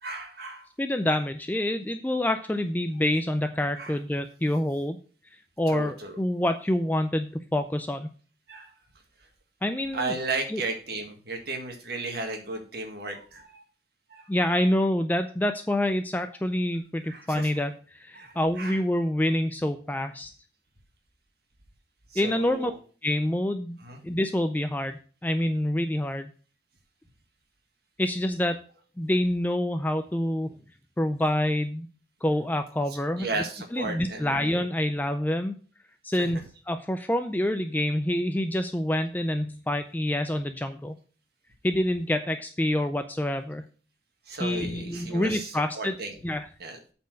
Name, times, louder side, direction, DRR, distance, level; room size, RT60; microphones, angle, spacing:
voice 1, 0.0-0.7 3.8-4.0 5.7-6.2 8.5-8.7 9.9-13.6 14.1-14.3 17.1-17.5 18.2-18.8 22.1-22.7 23.8-24.0 33.2-34.4 36.2-36.3 44.3-46.2 46.6-46.8, right 3 dB, 60° right, 4 dB, 1.8 m, -34 dB
voice 2, 0.8-5.0 5.6-8.1 9.6-10.1 10.5-10.6 14.3-20.3 22.2-22.7 23.0-26.3 28.0-28.6 29.0-30.5 31.0-31.9 32.2-33.3 33.7-35.6 36.0-36.4 36.7-41.0 41.6-43.7 44.4-46.0 46.2-46.5, left 1 dB, 10° left, 8 dB, 0.4 m, -27 dB
8.3 x 4.4 x 6.4 m, 0.40 s
head